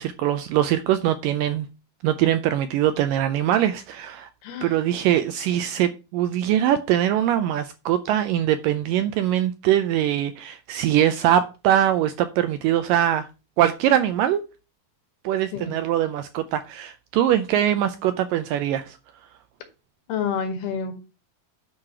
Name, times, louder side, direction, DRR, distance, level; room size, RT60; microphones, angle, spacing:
voice 1, 0.0-1.7 2.0-4.3 4.6-13.3 13.6-14.4 15.2-19.0, right 11 dB, 80° right, 2.0 m, -22 dB
voice 2, 4.4-4.7 15.5-15.8 20.1-20.9, left 6 dB, 80° left, 3.6 m, -28 dB
9.7 x 4.9 x 5.7 m
omnidirectional pair, 4.4 m